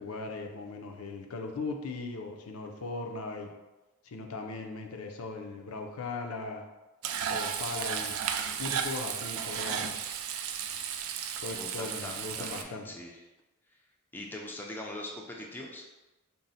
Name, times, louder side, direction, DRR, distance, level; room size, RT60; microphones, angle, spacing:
voice 1, 0.0-3.5 4.0-6.6 7.3-8.3 8.6-10.0 11.4-12.8, left 3 dB, 85° left, 4 dB, 0.5 m, -38 dB
Frying (food), 7.0-12.6, right 8 dB, 80° right, 0.3 m, -34 dB
voice 2, 11.5-13.2 14.1-15.9, left 1 dB, 10° left, -1 dB, 0.3 m, -42 dB
3.8 x 2.1 x 4.0 m, 1.1 s
head